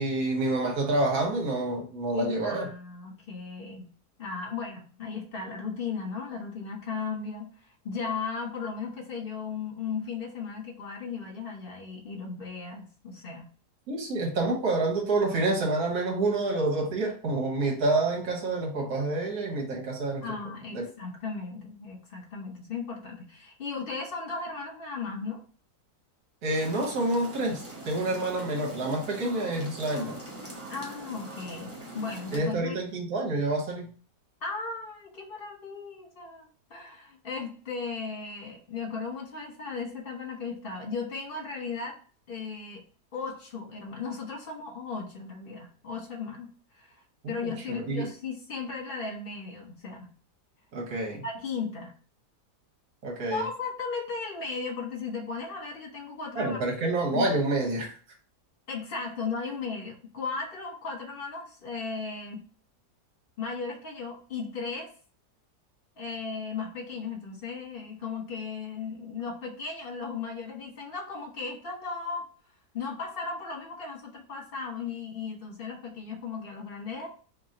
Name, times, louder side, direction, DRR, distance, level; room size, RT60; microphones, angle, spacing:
voice 1, 0.0-2.7 13.9-20.2 20.7-20.9 26.4-30.2 32.3-33.9 47.2-48.1 50.7-51.2 53.0-53.5 56.3-57.9, right 2 dB, 70° right, 0 dB, 1.6 m, -28 dB
voice 2, 2.1-3.9 4.2-7.5 7.8-13.5 20.2-25.4 30.7-32.8 34.4-42.0 42.3-42.8 43.1-46.9 47.3-50.1 51.2-51.9 53.3-56.6 57.1-57.3 58.7-62.4 63.4-64.9 66.0-72.3 72.7-77.1, left 5 dB, 40° left, -1 dB, 1.2 m, -36 dB
sound 1, 26.5-32.4, right 1 dB, 15° right, 0.6 m, -42 dB
3.0 x 2.9 x 3.8 m, 0.40 s
omnidirectional pair, 1.7 m